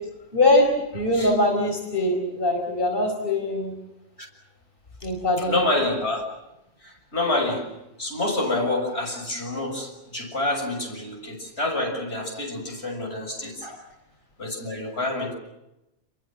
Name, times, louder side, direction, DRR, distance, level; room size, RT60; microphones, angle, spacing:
voice 1, 0.3-3.7 5.0-5.7 13.6-13.8, left 1 dB, 55° left, 2 dB, 5.0 m, -22 dB
voice 2, 5.4-6.2 6.8-7.7 8.0-13.7 14.4-15.3, left 2 dB, 85° left, 2 dB, 7.2 m, -27 dB
29.0 x 22.5 x 7.6 m, 0.90 s
omnidirectional pair, 1.1 m